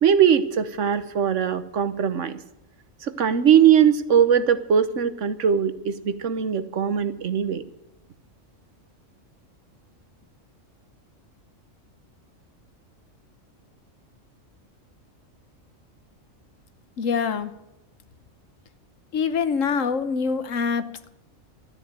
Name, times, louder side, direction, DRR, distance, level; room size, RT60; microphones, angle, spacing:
voice 1, 0.0-2.4 3.1-7.6, right 8 dB, 70° right, 12 dB, 1.3 m, -20 dB
voice 2, 17.0-17.5 19.1-21.1, left 5 dB, 75° left, 12 dB, 1.3 m, -25 dB
12.5 x 10.0 x 9.0 m, 0.91 s
omnidirectional pair, 1.4 m